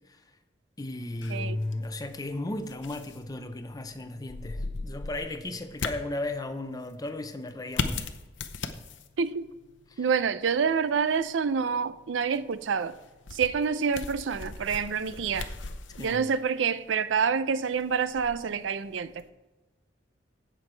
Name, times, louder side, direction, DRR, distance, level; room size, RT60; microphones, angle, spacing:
voice 1, 0.8-8.1 9.9-10.1 16.0-16.2, left 2 dB, 20° left, 0.7 m, -35 dB
sound 1, 1.2-19.3, left 4 dB, 85° left, 0.7 m, -40 dB
voice 2, 9.2-9.5 10.0-12.9 13.3-15.5 16.0-19.2, right 6 dB, 85° right, 0.5 m, -27 dB
16.0 x 6.2 x 3.3 m
head